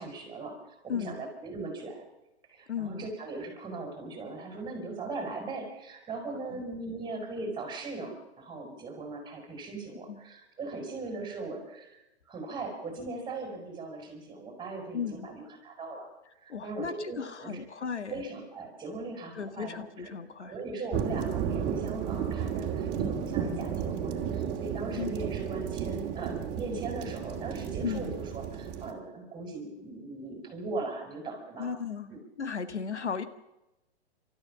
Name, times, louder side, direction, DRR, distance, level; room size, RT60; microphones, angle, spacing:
voice 1, 0.0-2.0 2.5-12.0 12.2-16.1 16.4-17.7 18.1-20.1 20.4-31.7 32.1-32.2, right 3 dB, 15° right, 4 dB, 6.5 m, -39 dB
voice 2, 0.9-1.2 2.7-3.1 6.4-6.6 10.1-10.2 14.9-15.2 16.5-18.1 19.4-20.5 25.0-25.1 27.8-28.2 31.6-32.1 32.4-33.2, left 6 dB, 90° left, 11 dB, 1.8 m, -35 dB
sound 1, 20.9-28.9, right 8 dB, 30° right, 2.9 m, -33 dB
29.5 x 13.5 x 7.4 m, 0.94 s
hypercardioid pair, 125°, 33 cm